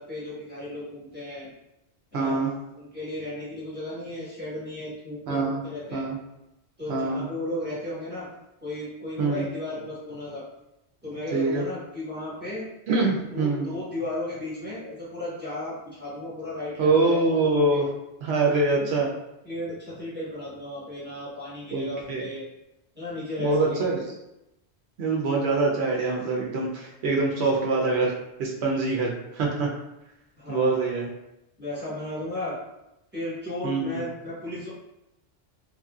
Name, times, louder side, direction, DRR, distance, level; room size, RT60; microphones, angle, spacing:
voice 1, 0.0-1.5 2.1-2.4 2.7-6.0 6.8-8.3 8.6-10.4 11.0-12.7 13.3-17.2 17.7-17.8 18.4-18.9 19.4-22.4 22.9-24.0 30.4-30.9 31.6-32.6 33.1-34.7, left 1 dB, 10° right, -10 dB, 1.1 m, -35 dB
voice 2, 2.1-2.5 5.3-5.6 5.9-6.1 6.9-7.3 9.2-9.4 11.3-11.6 12.9-13.7 16.8-17.9 18.2-19.1 21.7-22.2 23.4-24.0 25.0-28.1 28.4-29.7 30.5-31.1 33.6-34.0, right 3 dB, 75° right, -1 dB, 0.8 m, -24 dB
3.0 x 2.5 x 2.3 m, 0.89 s
omnidirectional pair, 1.1 m